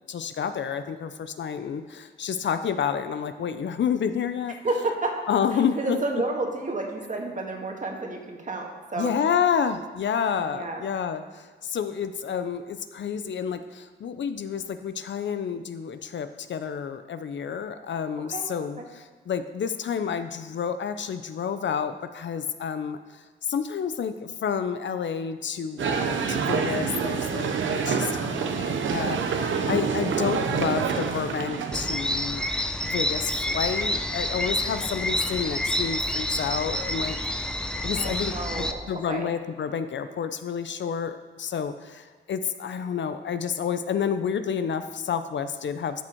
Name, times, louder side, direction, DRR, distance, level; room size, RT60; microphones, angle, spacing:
voice 1, 0.1-4.5 5.3-6.0 9.0-23.2 23.5-32.5 32.8-37.5 37.8-46.0, left 7 dB, 70° left, 10 dB, 0.6 m, -29 dB
voice 2, 4.6-5.2 5.5-9.2 10.5-10.8 18.3-18.5 18.8-18.9 34.8-34.9 38.0-39.3, right 2 dB, 40° right, 1 dB, 1.7 m, -31 dB
sound 1, 25.8-32.0, right 6 dB, 80° right, 0.8 m, -27 dB
sound 2, 31.7-38.7, left 1 dB, 5° left, 0.6 m, -28 dB
12.5 x 6.2 x 4.5 m, 1.4 s
cardioid pair, 75°, 19 cm